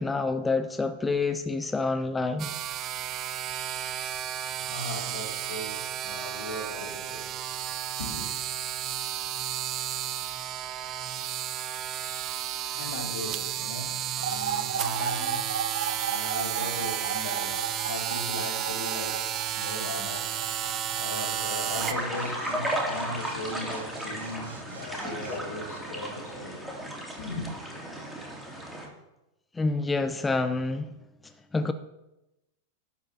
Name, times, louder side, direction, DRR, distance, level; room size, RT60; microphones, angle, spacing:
voice 1, 0.0-2.5 29.5-30.9 31.5-31.7, left 3 dB, 15° left, 0.6 m, -27 dB
sound 1, 2.4-21.9, right 10 dB, 40° right, 0.7 m, -32 dB
voice 2, 4.2-8.3 12.4-26.7 27.2-27.5, left 2 dB, 75° left, 2.8 m, -38 dB
sound 2, 14.2-25.4, right 8 dB, 75° right, 0.7 m, -36 dB
sound 3, 21.7-28.9, right 1 dB, 5° right, 2.7 m, -34 dB
11.5 x 4.9 x 6.6 m
hypercardioid pair, 100°, 0 cm